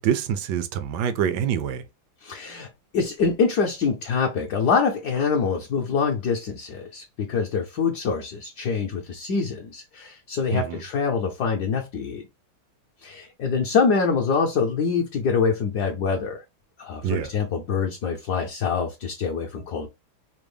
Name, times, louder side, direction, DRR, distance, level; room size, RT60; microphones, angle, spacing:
voice 1, 0.0-1.8 10.5-10.8 17.0-17.3, right 9 dB, 80° right, 0.9 m, -25 dB
voice 2, 2.2-2.7 2.9-12.2 13.0-16.4 16.8-19.9, left 5 dB, 70° left, 1.0 m, -25 dB
5.0 x 2.0 x 3.3 m
omnidirectional pair, 2.4 m